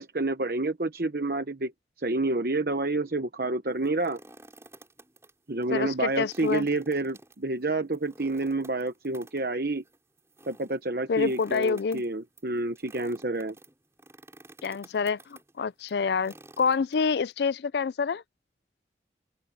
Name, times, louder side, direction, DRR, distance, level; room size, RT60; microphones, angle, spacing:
voice 1, 0.0-1.7 2.0-4.2 5.5-9.8 10.5-13.5, right 2 dB, 55° right, 1.1 m, -29 dB
sound 1, 3.7-5.3 5.6-5.7 6.1-17.3, right 2 dB, 15° right, 6.5 m, -52 dB
voice 2, 5.7-6.7 11.1-12.0 14.6-18.2, left 5 dB, 70° left, 0.4 m, -27 dB
open air
head